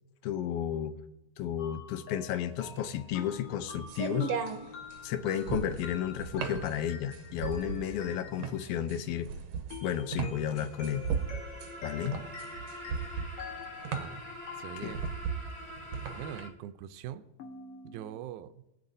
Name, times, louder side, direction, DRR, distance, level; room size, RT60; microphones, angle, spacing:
voice 1, 0.2-1.0 1.4-4.3 5.0-9.3 9.8-11.0 11.8-12.1 14.8-14.9, left 10 dB, 75° left, 11 dB, 1.5 m, -32 dB
sound 1, 1.6-9.1 9.7-15.4 17.4-18.2, left 5 dB, 55° left, 2.1 m, -47 dB
sound 2, 2.5-16.4, right 6 dB, 65° right, 2.0 m, -37 dB
sound 3, 10.1-16.5, equal, 5° left, 2.0 m, -46 dB
voice 2, 14.6-15.1 16.2-17.2 17.8-18.6, right 11 dB, 90° right, 10 dB, 2.0 m, -42 dB
22.5 x 8.1 x 2.7 m, 0.87 s
omnidirectional pair, 3.4 m